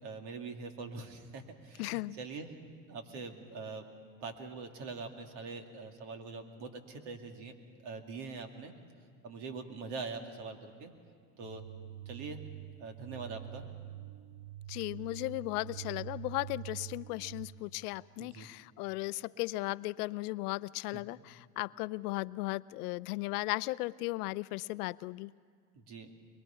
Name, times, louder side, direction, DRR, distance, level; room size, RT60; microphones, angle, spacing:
voice 1, 0.0-2.5 2.9-3.9 4.2-8.7 9.2-10.9 11.4-11.6 12.1-12.4 12.8-13.7 18.2-18.5 20.9-21.0 25.7-26.1, right 4 dB, 60° right, 5 dB, 2.4 m, -43 dB
voice 2, 1.8-2.2 14.7-25.3, left 20 dB, 75° left, 18 dB, 0.5 m, -36 dB
sound 1, 11.4-17.5, right 13 dB, 25° right, 2.0 m, -46 dB
23.5 x 22.0 x 5.7 m, 2.1 s
supercardioid pair, 95°, 46 cm